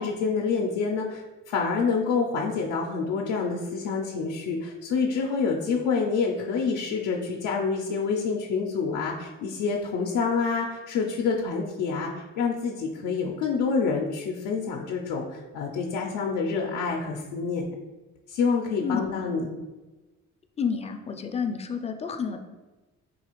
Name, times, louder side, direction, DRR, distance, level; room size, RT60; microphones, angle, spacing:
voice 1, 0.0-17.7 18.3-19.5, left 5 dB, 85° left, -1 dB, 0.5 m, -27 dB
voice 2, 20.6-22.4, left 6 dB, 20° left, 5 dB, 0.3 m, -29 dB
3.9 x 2.4 x 2.9 m, 1.2 s
cardioid pair, 90°, 30 cm